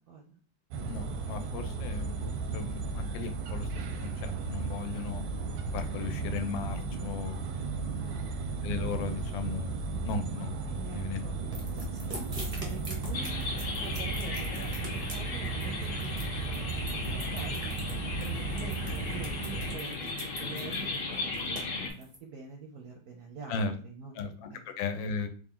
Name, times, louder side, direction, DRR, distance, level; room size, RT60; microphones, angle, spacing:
voice 1, 0.1-0.4 8.0-8.4 10.7-11.3 11.7-16.7 17.3-17.7 18.0-24.2 24.5-24.6, right 5 dB, 70° right, 1 dB, 0.9 m, -46 dB
sound 1, 0.7-19.8, right 3 dB, 85° right, 1.4 m, -35 dB
voice 2, 0.9-5.2 5.7-7.5 8.6-10.5 10.9-11.2 12.0-12.1 23.5-23.7 24.1-24.5 24.8-25.3, left 4 dB, 80° left, 7 dB, 1.3 m, -36 dB
sound 2, 11.5-22.2, right 1 dB, 50° right, 0.4 m, -43 dB
sound 3, 13.1-21.9, left 3 dB, 60° left, 0.8 m, -37 dB
3.5 x 2.5 x 3.6 m, 0.41 s
omnidirectional pair, 2.1 m